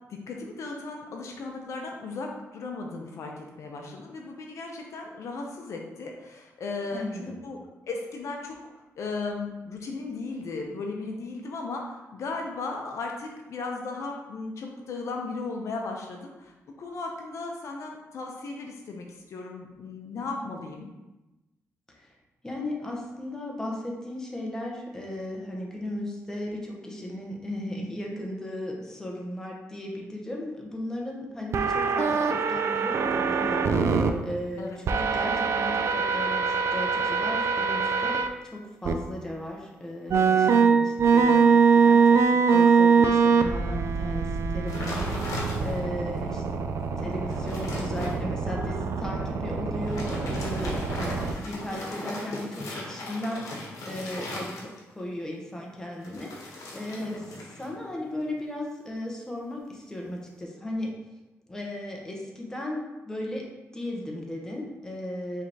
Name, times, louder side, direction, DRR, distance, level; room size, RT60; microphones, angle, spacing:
voice 1, 0.3-7.6 7.9-8.6 9.0-20.9 34.6-34.8 57.0-57.2, left 3 dB, 65° left, 1 dB, 0.6 m, -36 dB
voice 2, 6.9-7.4 20.1-20.5 21.9-22.1 22.4-46.4 47.0-57.2 57.6-60.9 61.5-63.5 63.7-65.4, left 1 dB, 10° left, -1 dB, 0.9 m, -36 dB
sound 1, 31.5-34.1 34.9-38.3 38.8-38.9 40.1-51.3, right 5 dB, 60° right, 0.3 m, -23 dB
sound 2, 44.7-46.0 46.5-46.6 47.0-48.2 49.7-55.0 56.0-57.7 58.0-58.4, left 2 dB, 85° left, 0.9 m, -38 dB
4.8 x 3.3 x 2.8 m, 1.0 s
cardioid pair, 110°, 5 cm